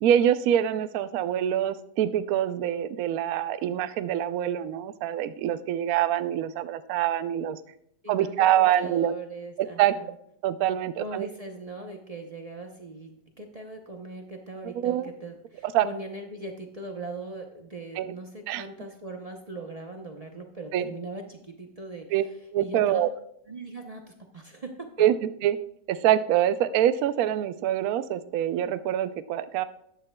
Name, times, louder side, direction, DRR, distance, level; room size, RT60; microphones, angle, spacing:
voice 1, 0.0-7.6 8.1-9.1 9.6-10.0 10.4-11.3 14.6-15.1 15.6-15.9 18.0-18.1 18.5-18.6 20.7-20.9 22.1-22.3 22.5-23.1 25.0-25.2 25.4-25.6 25.9-29.6, right 11 dB, 70° right, 12 dB, 0.9 m, -25 dB
voice 2, 8.0-9.8 11.0-13.1 13.4-22.0 22.6-23.0 23.5-24.9, right 2 dB, 40° right, 3 dB, 0.5 m, -40 dB
13.0 x 9.6 x 2.2 m, 0.72 s
omnidirectional pair, 1.8 m